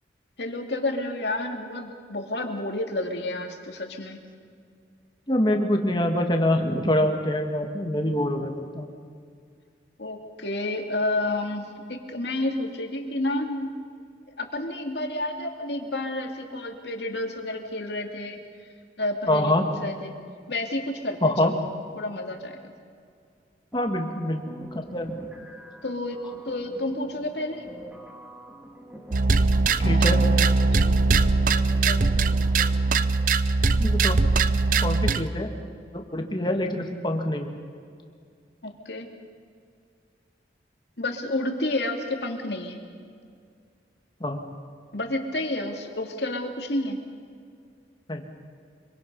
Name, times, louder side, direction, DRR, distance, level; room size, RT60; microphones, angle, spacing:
voice 1, 0.4-4.2 10.0-13.8 14.4-18.4 19.0-20.1 20.5-21.7 22.0-22.7 25.8-27.6 30.8-32.1 38.6-39.1 41.0-42.8 44.9-47.0, left 1 dB, 70° left, 3 dB, 2.4 m, -30 dB
voice 2, 5.3-8.9 19.3-19.6 21.2-21.5 23.7-24.4 24.7-25.2 29.8-30.4 33.8-34.2 34.7-35.5 35.9-37.5 44.2-44.4 48.1-48.2, left 1 dB, 25° left, 3 dB, 1.9 m, -25 dB
sound 1, 23.7-33.2, equal, 5° right, 1.9 m, -44 dB
sound 2, 29.1-35.3, right 3 dB, 50° right, 0.6 m, -21 dB
25.5 x 23.5 x 5.5 m, 2.2 s
head